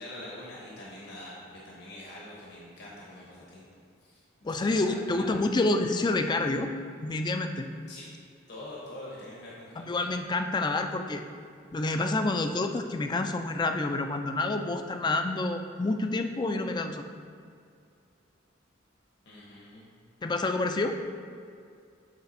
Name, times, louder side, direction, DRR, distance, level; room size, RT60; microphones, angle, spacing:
voice 1, 0.0-3.7 4.0-4.2 4.5-5.3 7.9-8.1 8.5-9.9 19.2-19.9, left 1 dB, 60° left, -5 dB, 1.1 m, -44 dB
voice 2, 4.4-6.7 7.0-7.7 9.8-11.2 11.7-17.1 20.2-21.0, left 2 dB, 25° left, 7 dB, 0.3 m, -28 dB
8.0 x 3.4 x 4.2 m, 2.4 s
head